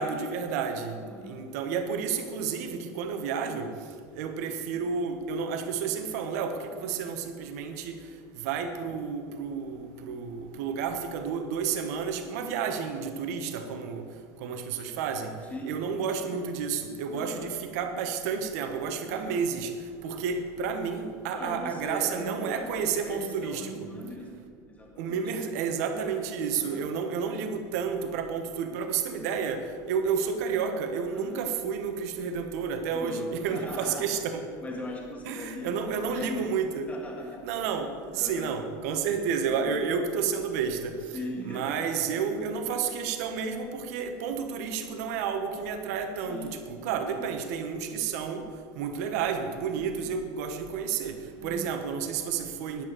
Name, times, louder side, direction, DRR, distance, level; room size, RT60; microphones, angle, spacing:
voice 1, 0.0-1.0 1.2-3.7 4.1-8.0 8.3-14.1 14.4-15.3 15.7-19.7 20.0-23.7 25.0-34.5 35.2-36.9 37.4-40.9 41.4-48.5 48.8-52.8, right 6 dB, 80° right, 6 dB, 1.2 m, -31 dB
voice 2, 1.0-1.5 15.5-15.8 17.1-17.5 19.0-19.4 21.2-25.2 25.9-26.2 26.5-26.9 31.1-31.4 32.9-34.1 34.6-36.6 36.9-37.8 38.1-38.6 39.4-39.9 41.1-42.3 46.3-46.6 46.9-47.3 49.8-50.1 51.4-51.7, left 1 dB, 15° left, 0 dB, 1.7 m, -40 dB
10.0 x 6.6 x 7.6 m, 2.1 s
supercardioid pair, 125°, 9 cm